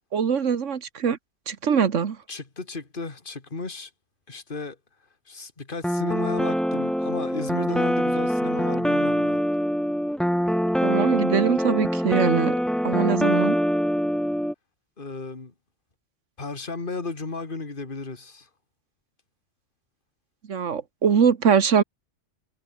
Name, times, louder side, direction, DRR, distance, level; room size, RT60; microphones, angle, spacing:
voice 1, 0.1-1.2 1.5-2.2 10.8-12.6 12.8-13.6 20.5-21.8, right 7 dB, 80° right, 1.7 m, -22 dB
voice 2, 2.3-3.9 4.3-4.8 5.3-9.4 15.0-15.5 16.4-18.5, left 3 dB, 45° left, 2.6 m, -34 dB
sound 1, 5.8-14.5, equal, ahead, 1.2 m, -24 dB
omnidirectional pair, 1.3 m